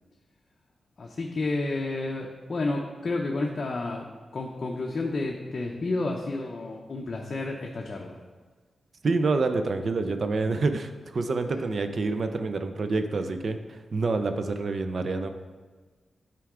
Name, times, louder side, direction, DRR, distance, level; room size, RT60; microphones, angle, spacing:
voice 1, 1.0-8.2, left 2 dB, 45° left, 0 dB, 0.6 m, -31 dB
voice 2, 9.0-15.3, right 3 dB, 50° right, 8 dB, 0.5 m, -27 dB
9.2 x 4.5 x 3.7 m, 1.4 s
wide cardioid pair, 125°, 0 cm